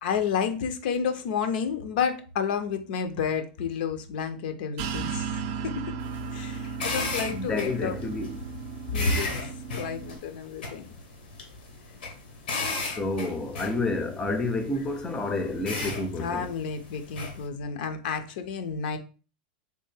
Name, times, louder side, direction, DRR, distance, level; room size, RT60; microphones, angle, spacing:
voice 1, 0.0-5.8 6.3-8.0 8.9-9.3 9.8-10.9 16.2-19.0, left 6 dB, 70° left, 0.5 m, -30 dB
sound 1, 4.8-10.2, right 6 dB, 50° right, 0.3 m, -35 dB
sound 2, 6.0-17.4, left 3 dB, 90° left, 1.0 m, -36 dB
voice 2, 7.3-8.4 12.9-16.5, left 2 dB, 15° left, 0.5 m, -29 dB
3.3 x 2.6 x 3.2 m
supercardioid pair, 135°, 5 cm